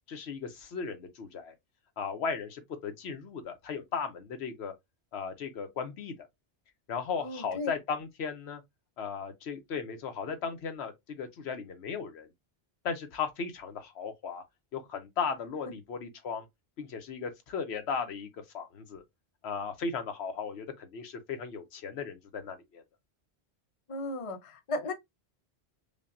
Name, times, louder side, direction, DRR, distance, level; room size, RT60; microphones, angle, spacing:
voice 1, 0.1-1.5 2.0-4.7 5.1-6.1 6.9-8.6 9.0-12.3 12.8-14.4 14.7-16.4 16.8-19.0 19.4-22.8, left 6 dB, 75° left, 1.0 m, -36 dB
voice 2, 7.2-7.7 23.9-24.9, left 2 dB, 35° left, 0.6 m, -35 dB
5.1 x 2.2 x 2.5 m
omnidirectional pair, 1.1 m